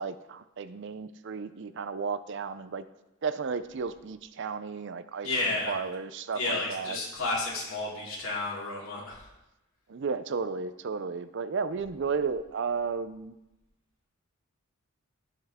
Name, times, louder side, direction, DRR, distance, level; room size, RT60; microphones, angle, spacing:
voice 1, 0.0-2.8 3.2-7.0 9.9-13.3, right 5 dB, 60° right, 13 dB, 0.5 m, -33 dB
voice 2, 5.2-5.8 6.3-9.3, left 2 dB, 70° left, -5 dB, 3.6 m, -31 dB
16.5 x 5.6 x 3.6 m, 0.93 s
head